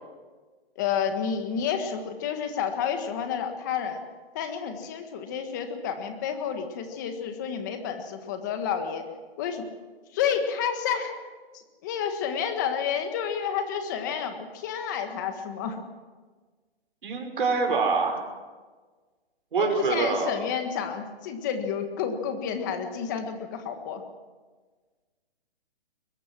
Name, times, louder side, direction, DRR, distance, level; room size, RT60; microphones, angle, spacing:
voice 1, 0.8-4.0 4.3-9.0 9.4-9.6 10.1-11.2 11.8-15.8 19.6-24.0, left 7 dB, 20° left, 6 dB, 1.6 m, -30 dB
voice 2, 17.0-18.3 19.5-20.3, right 4 dB, 55° right, 3 dB, 5.8 m, -25 dB
22.0 x 22.0 x 6.2 m, 1.4 s
hypercardioid pair, 175°, 31 cm